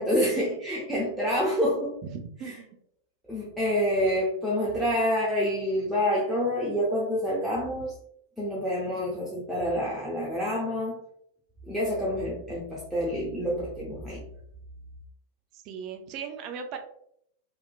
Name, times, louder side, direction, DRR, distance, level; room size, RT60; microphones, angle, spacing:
voice 1, 0.0-1.9 2.4-2.5 3.3-7.9 8.4-11.0 11.7-14.2, equal, ahead, -7 dB, 0.6 m, -27 dB
voice 2, 2.1-2.7 15.5-16.8, right 6 dB, 40° right, 5 dB, 0.4 m, -38 dB
3.1 x 2.1 x 2.2 m, 0.71 s
figure-of-eight pair, 90°, 0 cm